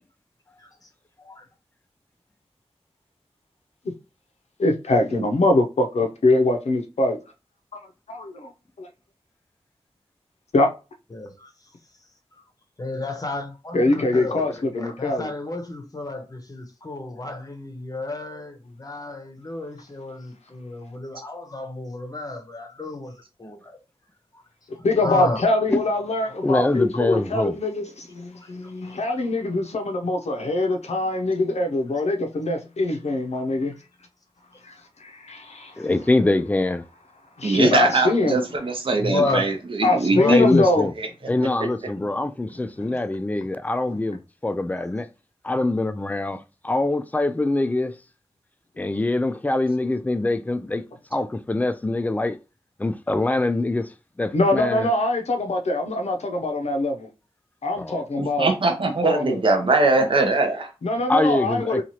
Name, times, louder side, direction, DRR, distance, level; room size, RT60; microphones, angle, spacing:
voice 1, 4.6-7.2 7.7-7.8 8.1-8.5 8.8-8.9 10.5-10.7 13.7-15.3 24.8-33.7 34.6-35.9 37.4-38.4 39.8-40.9 42.8-42.9 43.9-44.0 54.3-57.1 57.6-58.5 59.0-59.4 60.8-61.8, left 2 dB, 85° left, 0.7 m, -23 dB
voice 2, 11.1-11.5 12.8-23.1 23.4-23.8 24.8-25.4 28.4-28.7 39.0-39.4 40.1-40.5, left 2 dB, 35° left, 0.7 m, -31 dB
voice 3, 26.4-27.5 35.8-36.8 40.3-40.9 41.3-45.1 45.4-47.9 48.8-50.8 51.1-52.4 52.8-53.9 54.2-54.9 57.8-58.0 61.1-61.8, left 2 dB, 15° left, 0.3 m, -24 dB
voice 4, 37.4-40.4 41.0-41.1 58.2-60.7, right 3 dB, 55° right, 0.6 m, -21 dB
3.0 x 2.4 x 2.8 m
wide cardioid pair, 70°, 11 cm